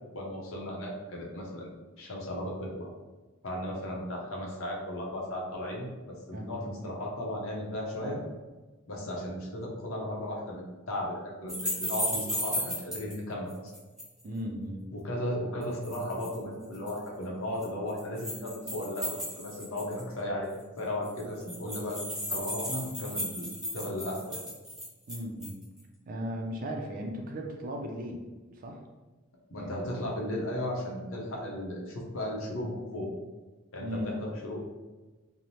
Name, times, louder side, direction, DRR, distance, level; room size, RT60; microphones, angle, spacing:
voice 1, 0.1-1.7 2.0-2.9 3.4-8.2 8.9-13.7 14.9-20.5 20.8-24.4 29.5-33.1 33.7-34.7, left 1 dB, 70° left, -2 dB, 0.6 m, -35 dB
voice 2, 6.3-6.6 8.0-8.2 14.2-14.9 25.1-25.6 26.1-28.2 28.5-28.8 29.5-29.9 33.8-34.1, equal, 40° right, 1 dB, 0.3 m, -37 dB
sound 1, 11.5-13.1 13.5-14.2 15.6-16.4 16.7-17.0 17.6-20.1 20.5-20.6 20.8-20.9 21.1-25.6, equal, 5° right, 0.6 m, -35 dB
3.0 x 2.0 x 2.6 m, 1.2 s
head